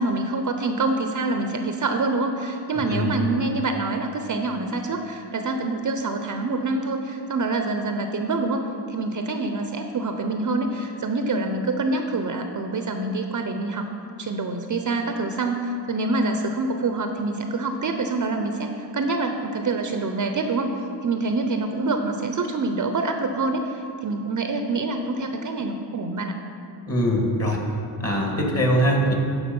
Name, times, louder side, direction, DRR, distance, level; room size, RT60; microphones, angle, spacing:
voice 1, 0.0-13.9 14.2-20.8 21.0-26.3, right 3 dB, 40° right, 5 dB, 0.7 m, -26 dB
voice 2, 26.9-27.6 28.0-29.1, equal, 30° left, 0 dB, 2.1 m, -22 dB
12.0 x 4.8 x 5.4 m, 2.5 s
cardioid pair, 75°, 47 cm